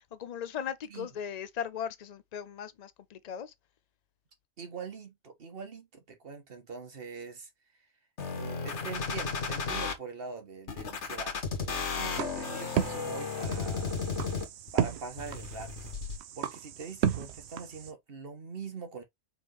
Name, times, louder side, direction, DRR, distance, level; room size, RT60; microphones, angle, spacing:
voice 1, 0.0-3.5, left 8 dB, 50° left, 0.5 m, -38 dB
voice 2, 4.6-7.5 8.3-14.0 14.7-15.9 16.3-19.0, right 5 dB, 55° right, 1.5 m, -43 dB
sound 1, 8.2-9.9 10.7-14.7 15.2-16.2, left 5 dB, 80° left, 1.4 m, -34 dB
sound 2, 12.1-17.9, right 9 dB, 70° right, 0.9 m, -34 dB
4.8 x 3.6 x 3.0 m
omnidirectional pair, 1.2 m